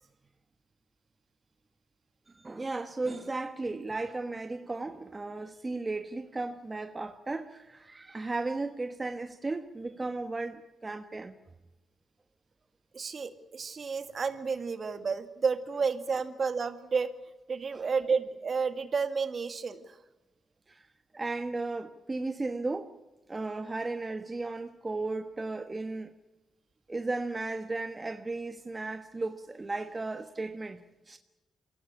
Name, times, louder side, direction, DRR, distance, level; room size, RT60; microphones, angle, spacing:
voice 1, 2.3-11.4 17.7-17.9 20.7-20.9 21.1-23.0 23.3-26.1 26.9-31.2, right 3 dB, 25° right, 1.3 m, -35 dB
voice 2, 12.9-17.1 17.5-20.0, right 5 dB, 50° right, 2.0 m, -31 dB
23.5 x 16.5 x 9.9 m
supercardioid pair, 60°, 0 cm